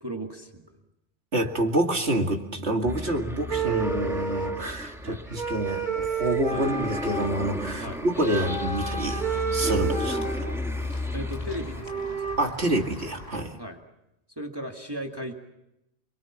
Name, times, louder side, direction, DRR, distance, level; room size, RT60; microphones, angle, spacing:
voice 1, 0.0-0.8 5.0-5.2 6.5-6.7 7.8-8.0 8.4-8.5 11.1-12.2 13.6-13.8 14.3-15.3, equal, 20° right, 3 dB, 1.9 m, -36 dB
voice 2, 1.3-10.5 12.4-13.5, right 1 dB, 90° right, 2 dB, 2.6 m, -27 dB
sound 1, 2.9-11.8, left 1 dB, 5° right, 1.5 m, -34 dB
sound 2, 3.5-4.8 5.3-7.4 8.2-10.7 11.4-11.5 11.7-12.4, right 5 dB, 45° right, 1.9 m, -30 dB
Walk footsteps / Bell, 6.7-13.4, left 2 dB, 30° left, 3.1 m, -43 dB
29.0 x 23.0 x 7.2 m, 0.89 s
omnidirectional pair, 1.1 m